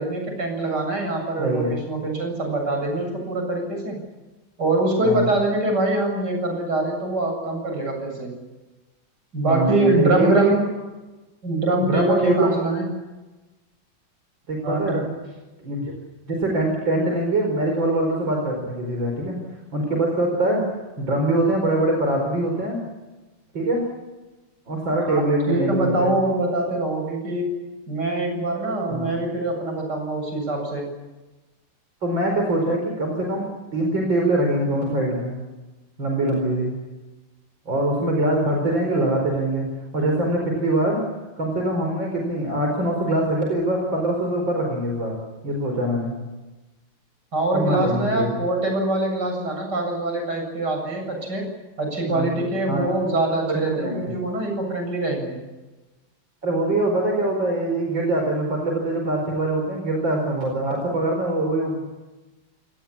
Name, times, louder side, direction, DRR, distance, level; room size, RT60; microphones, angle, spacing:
voice 1, 0.0-4.0 4.6-8.3 9.3-10.7 11.4-12.9 14.6-15.1 25.0-27.6 27.9-30.9 47.3-51.5 51.8-55.4, right 2 dB, 60° right, 3 dB, 8.1 m, -24 dB
voice 2, 1.4-1.7 5.0-5.3 9.4-10.4 11.9-12.5 14.5-15.0 15.6-15.9 16.3-19.4 19.7-20.6 21.0-22.8 23.5-23.8 24.7-26.1 28.9-29.1 32.0-35.3 36.0-36.7 37.7-39.7 39.9-41.0 41.4-45.1 45.4-46.1 47.5-48.3 52.1-52.3 52.7-52.8 53.5-54.1 56.4-61.9, right 1 dB, 80° right, 1 dB, 5.4 m, -23 dB
29.0 x 18.5 x 8.7 m, 1.1 s
omnidirectional pair, 2.0 m